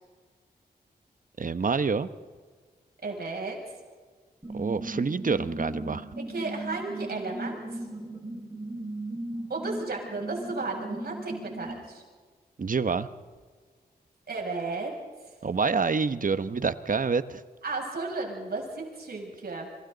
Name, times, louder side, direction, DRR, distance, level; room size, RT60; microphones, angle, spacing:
voice 1, 1.4-2.1 4.5-6.1 12.6-13.1 15.4-17.4, right 5 dB, 55° right, 12 dB, 1.1 m, -27 dB
voice 2, 3.0-3.6 6.3-7.8 9.5-12.0 14.3-14.9 17.6-19.7, right 3 dB, 70° right, -1 dB, 7.5 m, -34 dB
sound 1, 4.4-11.8, right 1 dB, 25° right, 5.0 m, -37 dB
28.0 x 25.5 x 4.1 m, 1.5 s
cardioid pair, 50°, 17 cm